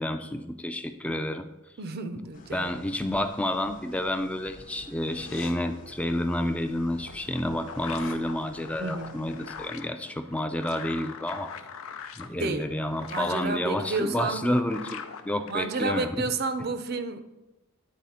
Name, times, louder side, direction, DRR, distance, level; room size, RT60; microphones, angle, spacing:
voice 1, 0.0-1.5 2.5-11.5 12.2-16.1, left 1 dB, 5° left, 8 dB, 0.3 m, -30 dB
voice 2, 1.8-2.8 8.7-9.2 12.4-12.7 13.1-14.6 15.5-17.2, right 3 dB, 50° right, 10 dB, 0.5 m, -31 dB
sound 1, 2.3-9.7, left 1 dB, 40° left, 0.7 m, -51 dB
sound 2, 5.0-5.5 6.7-6.8 7.1-8.1 11.3-11.7 12.0-12.3 12.8-13.3, left 4 dB, 70° left, 1.1 m, -48 dB
sound 3, 6.8-16.1, left 6 dB, 90° left, 0.5 m, -43 dB
9.4 x 4.1 x 4.2 m, 1.0 s
head